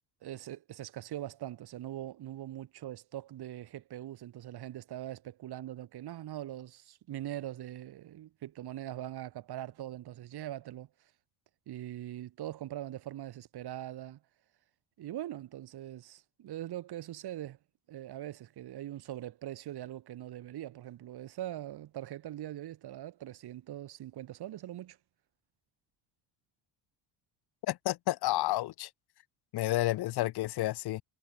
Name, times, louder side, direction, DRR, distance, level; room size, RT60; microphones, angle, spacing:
voice 1, 0.2-10.9 11.7-14.2 15.0-17.6 17.9-25.0, right 13 dB, 55° right, 5.5 m, -42 dB
voice 2, 27.6-28.9 29.5-31.0, left 16 dB, 55° left, 1.0 m, -30 dB
cardioid pair, 160°, 46 cm